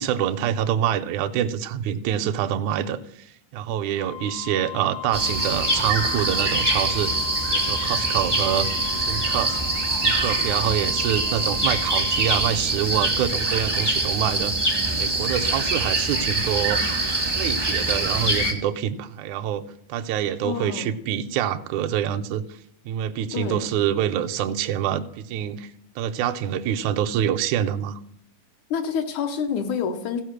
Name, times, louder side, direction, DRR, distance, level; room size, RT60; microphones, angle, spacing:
voice 1, 0.0-7.1 7.5-8.7 9.0-9.6 10.0-14.5 15.0-16.8 17.3-19.6 19.9-22.6 22.9-28.0, right 10 dB, 75° right, 8 dB, 1.8 m, -26 dB
Wind instrument woodwind instrument, 3.9-12.5, left 12 dB, 60° right, 0.8 m, -37 dB
sound 1, 5.1-18.5, right 2 dB, 20° right, 0.6 m, -24 dB
voice 2, 20.4-20.9 23.3-23.7 28.7-30.2, left 6 dB, 75° left, 6 dB, 2.2 m, -27 dB
15.5 x 5.4 x 6.5 m, 0.72 s
omnidirectional pair, 3.7 m